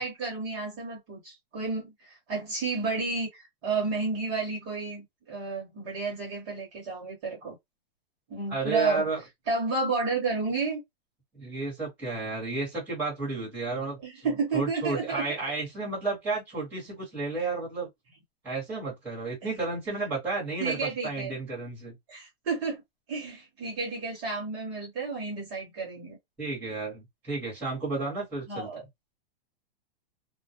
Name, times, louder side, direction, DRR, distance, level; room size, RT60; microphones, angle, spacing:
voice 1, 0.0-7.6 8.3-9.1 9.5-10.8 14.0-15.4 17.4-17.5 20.6-21.3 22.1-22.8 23.1-26.2 28.5-28.8, right 4 dB, 25° right, 1.0 m, -31 dB
voice 2, 8.5-9.2 11.3-14.3 14.5-17.9 18.4-20.8 21.0-22.0 26.4-28.7, right 3 dB, 5° right, 1.1 m, -32 dB
2.2 x 2.1 x 2.7 m
supercardioid pair, 175°, 30 cm